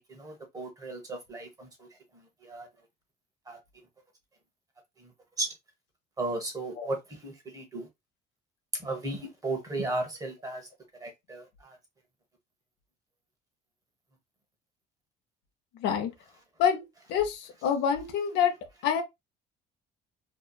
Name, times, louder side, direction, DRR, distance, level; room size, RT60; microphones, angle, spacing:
voice 1, 0.2-1.7 2.5-2.7 3.5-3.6 5.4-5.5 6.2-7.0 7.2-7.8 8.8-10.6 11.0-11.4, right 2 dB, 20° right, 1.0 m, -34 dB
voice 2, 15.7-16.1 16.6-16.8 17.1-18.5 18.8-19.0, left 8 dB, 75° left, 0.7 m, -26 dB
2.8 x 2.2 x 2.3 m
cardioid pair, 135°, 18 cm